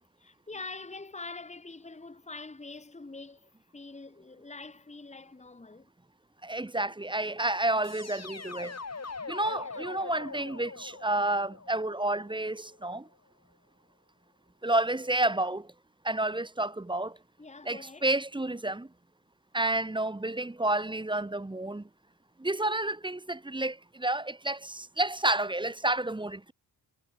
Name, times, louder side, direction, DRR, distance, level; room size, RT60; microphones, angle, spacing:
voice 1, 0.2-5.9 8.7-9.9 17.4-18.1, left 3 dB, 15° left, 1.7 m, -45 dB
voice 2, 6.4-8.8 9.3-13.1 14.6-15.7 16.0-17.2 17.7-18.9 19.5-21.9 22.4-26.5, right 2 dB, 10° right, 1.0 m, -30 dB
sound 1, 7.8-12.8, left 4 dB, 35° left, 3.9 m, -42 dB
cardioid pair, 90°, 42 cm